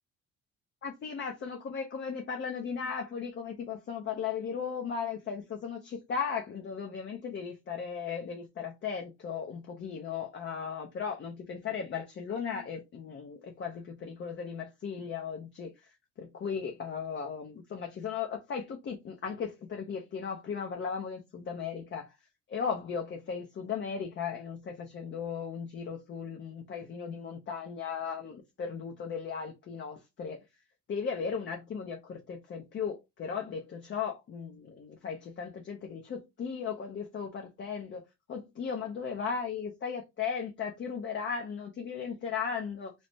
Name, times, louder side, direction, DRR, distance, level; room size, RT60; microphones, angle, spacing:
voice 1, 0.8-22.1 22.5-30.4 30.9-38.0 38.3-42.9, left 6 dB, 40° left, 0.6 m, -36 dB
3.2 x 2.0 x 2.7 m
supercardioid pair, 75°, 29 cm